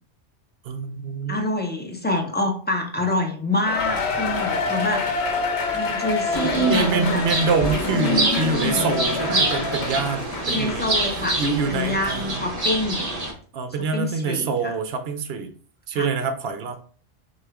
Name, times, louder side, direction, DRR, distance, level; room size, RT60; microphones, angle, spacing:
voice 1, 0.6-1.4 3.0-3.1 6.3-10.9 11.4-12.4 13.5-15.5 15.9-16.8, right 5 dB, 65° right, 8 dB, 0.9 m, -26 dB
voice 2, 1.3-5.2 5.7-7.2 7.9-8.9 9.3-9.5 10.5-11.4 11.7-13.1 13.9-14.7 15.9-16.1, left 1 dB, 10° left, 2 dB, 0.5 m, -26 dB
Cheering, 3.7-11.4 11.8-11.9 12.6-12.7, left 4 dB, 70° left, 1.0 m, -27 dB
sound 1, 6.3-13.3, right 1 dB, 35° right, 1.0 m, -26 dB
6.3 x 2.4 x 3.5 m, 0.43 s
omnidirectional pair, 1.2 m